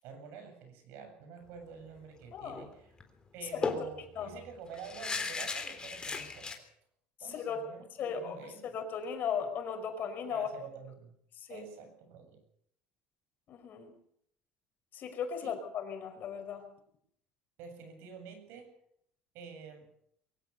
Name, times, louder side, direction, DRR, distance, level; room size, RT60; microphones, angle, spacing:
voice 1, 0.0-2.9 3.3-6.6 7.2-8.7 10.3-11.1 11.5-12.4 15.4-15.5 17.6-18.7 19.3-19.9, right 6 dB, 70° right, 7 dB, 7.9 m, -48 dB
voice 2, 2.3-2.6 3.5-3.7 4.2-4.3 7.3-7.7 8.0-8.4 8.7-10.5 11.4-11.6 13.5-13.9 14.9-16.7, left 7 dB, 50° left, 6 dB, 5.4 m, -37 dB
sound 1, 2.5-2.7 3.0-3.1 3.6-6.6, left 4 dB, 20° left, 3.6 m, -36 dB
23.0 x 17.0 x 6.8 m, 0.70 s
supercardioid pair, 115°, 4 cm